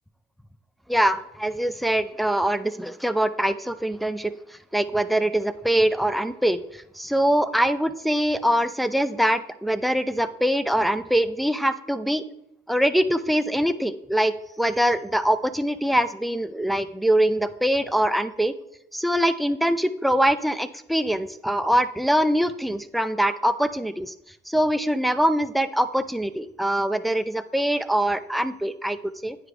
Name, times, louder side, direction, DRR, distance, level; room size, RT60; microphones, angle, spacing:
voice 1, 0.9-12.2 12.7-18.5 18.9-24.1 24.5-29.0 29.2-29.4, right 1 dB, ahead, 10 dB, 0.4 m, -23 dB
9.4 x 4.9 x 3.3 m, 0.83 s
cardioid pair, 90°, 20 cm